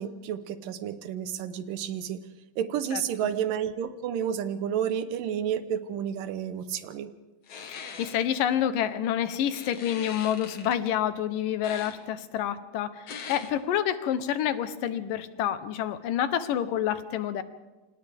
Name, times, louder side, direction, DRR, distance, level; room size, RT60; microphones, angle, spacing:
voice 1, 0.0-2.2 2.6-7.1, right 9 dB, 85° right, 11 dB, 2.7 m, -31 dB
sound 1, 7.5-8.1 9.5-10.9 11.6-12.0 13.1-13.5, left 6 dB, 55° left, 2.5 m, -41 dB
voice 2, 7.7-17.4, left 10 dB, 85° left, 11 dB, 2.7 m, -28 dB
28.5 x 26.5 x 3.6 m, 1.2 s
omnidirectional pair, 3.8 m